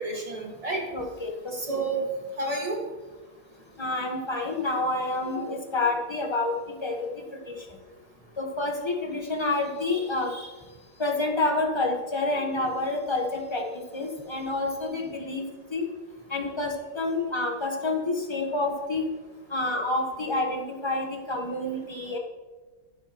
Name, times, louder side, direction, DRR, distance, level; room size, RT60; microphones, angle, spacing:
voice 1, 0.0-0.9 1.5-2.1 2.4-2.8 4.1-4.2 5.3-5.4, right 2 dB, 15° right, 0 dB, 1.6 m, -30 dB
voice 2, 0.9-1.5 3.8-6.5 6.8-7.1 8.4-10.5 11.0-13.6 13.9-15.4 15.7-15.8 16.3-19.1 19.5-22.2, left 2 dB, 20° left, 1 dB, 0.9 m, -28 dB
11.0 x 11.0 x 3.0 m, 1.3 s
omnidirectional pair, 2.4 m